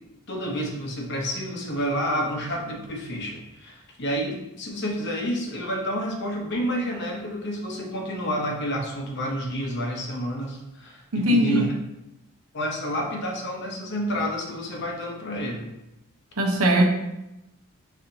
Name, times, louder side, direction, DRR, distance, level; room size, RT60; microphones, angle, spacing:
voice 1, 0.3-11.7 12.5-15.7, equal, 50° left, 1 dB, 0.8 m, -29 dB
voice 2, 11.1-11.7 16.4-16.9, equal, 75° right, 2 dB, 0.7 m, -20 dB
4.3 x 4.0 x 2.7 m, 0.91 s
head